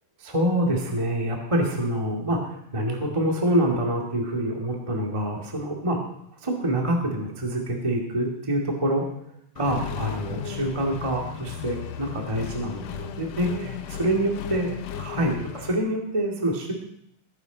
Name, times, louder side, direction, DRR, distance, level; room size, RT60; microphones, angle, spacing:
voice 1, 0.2-6.0 6.4-9.0 9.5-14.7 14.9-15.4 15.7-16.7, right 1 dB, 15° right, -1 dB, 1.4 m, -26 dB
Accelerating revving vroom, 9.6-15.8, left 8 dB, 80° left, 1.5 m, -35 dB
20.5 x 11.0 x 4.0 m, 0.76 s
omnidirectional pair, 4.1 m